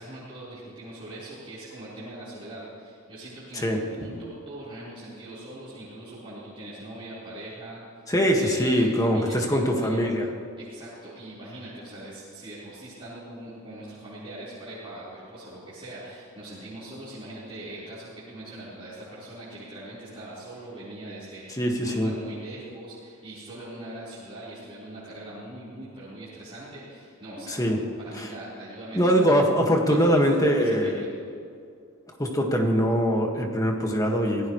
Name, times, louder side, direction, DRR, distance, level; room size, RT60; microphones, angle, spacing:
voice 1, 0.0-8.1 8.4-10.0 10.6-29.4 29.8-30.0 30.3-31.1, right 1 dB, 25° right, -12 dB, 4.4 m, -41 dB
voice 2, 3.5-4.2 8.1-10.3 21.5-22.1 27.5-27.8 28.1-28.3 28.9-31.1 32.2-34.5, equal, 15° left, 1 dB, 1.8 m, -23 dB
25.0 x 16.5 x 3.2 m, 2.4 s
head